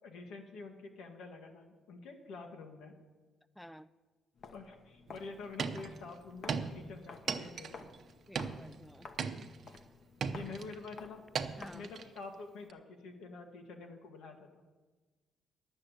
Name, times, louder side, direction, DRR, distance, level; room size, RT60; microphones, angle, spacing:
voice 1, 0.0-2.9 4.5-7.8 10.3-11.2 11.7-14.6, left 4 dB, 85° left, 3 dB, 1.6 m, -47 dB
voice 2, 3.6-3.9 8.3-9.5 11.6-11.9, equal, 5° left, 16 dB, 0.4 m, -51 dB
Walk footsteps, 4.3-12.0, left 4 dB, 55° left, 1.0 m, -54 dB
sound 1, 5.1-5.2 5.5-6.1 6.5-8.0 8.4-9.8 10.2-10.9 11.4-12.2 12.7-12.8, right 5 dB, 60° right, 0.7 m, -38 dB
10.5 x 7.1 x 8.1 m, 1.3 s
cardioid pair, 90°, 0 cm